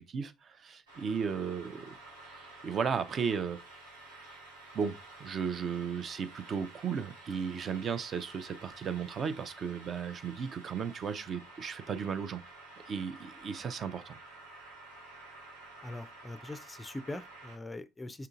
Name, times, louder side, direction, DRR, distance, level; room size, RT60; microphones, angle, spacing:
voice 1, 0.0-1.9 2.6-3.6 4.7-12.4 12.9-14.2, right 6 dB, 40° right, 0.5 m, -35 dB
sound 1, 0.9-17.6, right 2 dB, 80° right, 1.0 m, -51 dB
voice 2, 15.8-18.3, left 2 dB, 15° left, 0.4 m, -42 dB
5.7 x 3.8 x 2.4 m
figure-of-eight pair, 55°, 0 cm